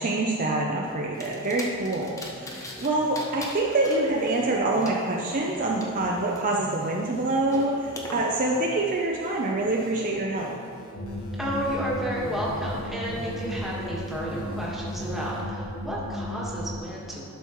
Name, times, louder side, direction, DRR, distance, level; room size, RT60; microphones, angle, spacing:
voice 1, 0.0-10.5, right 2 dB, 40° right, -2 dB, 0.6 m, -26 dB
sound 1, 0.8-15.4, left 1 dB, 65° left, 1.4 m, -46 dB
sound 2, 1.2-2.9 3.1-5.9 6.3-8.1, left 1 dB, 15° left, 0.7 m, -41 dB
sound 3, 10.9-16.8, left 1 dB, 85° left, 1.1 m, -34 dB
voice 2, 11.4-17.3, right 1 dB, ahead, -6 dB, 1.5 m, -32 dB
11.5 x 6.1 x 3.1 m, 2.3 s
head